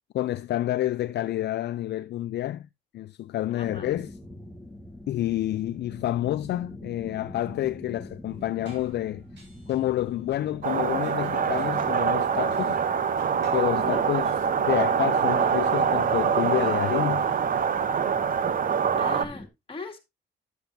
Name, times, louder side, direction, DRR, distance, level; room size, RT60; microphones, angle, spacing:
voice 1, 0.1-2.7 2.9-4.1 5.1-9.2 9.7-12.8 13.5-14.3 14.6-17.3, left 13 dB, 60° left, 0.4 m, -28 dB
voice 2, 3.5-3.9 13.7-14.0 19.0-20.0, left 3 dB, 25° left, 2.2 m, -39 dB
sound 1, 3.6-19.5, left 1 dB, 5° left, 1.7 m, -43 dB
sound 2, 8.2-18.7, right 1 dB, 65° right, 6.2 m, -53 dB
sound 3, 10.6-19.3, right 7 dB, 45° right, 0.8 m, -24 dB
10.5 x 7.8 x 2.6 m
cardioid pair, 90°, 20 cm